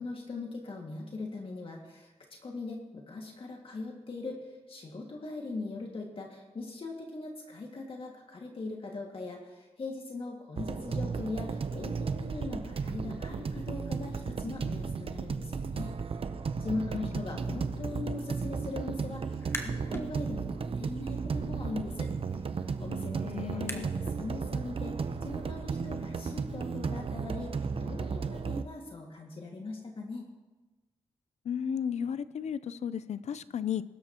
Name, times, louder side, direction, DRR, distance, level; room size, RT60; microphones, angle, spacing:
voice 1, 0.0-2.1 2.4-15.9 16.6-23.2 23.5-30.3, left 3 dB, 55° left, 0 dB, 2.0 m, -40 dB
sound 1, 10.6-28.6, right 5 dB, 55° right, 0.7 m, -34 dB
sound 2, 19.4-20.1 20.5-24.2, left 1 dB, 20° left, 1.3 m, -44 dB
voice 2, 23.2-23.9 31.4-33.8, left 8 dB, 80° left, 16 dB, 0.5 m, -34 dB
21.5 x 12.0 x 3.0 m, 1.2 s
wide cardioid pair, 100°, 11 cm